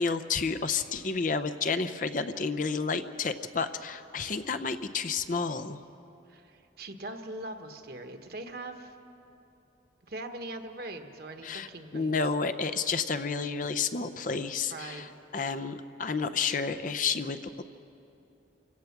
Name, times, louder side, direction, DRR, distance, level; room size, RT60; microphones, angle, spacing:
voice 1, 0.0-5.8 11.4-11.7 11.9-17.6, left 5 dB, 45° left, 10 dB, 0.6 m, -30 dB
voice 2, 6.3-9.0 10.1-12.2 14.7-15.0, right 2 dB, 55° right, 5 dB, 1.3 m, -41 dB
28.0 x 17.0 x 5.9 m, 2.9 s
head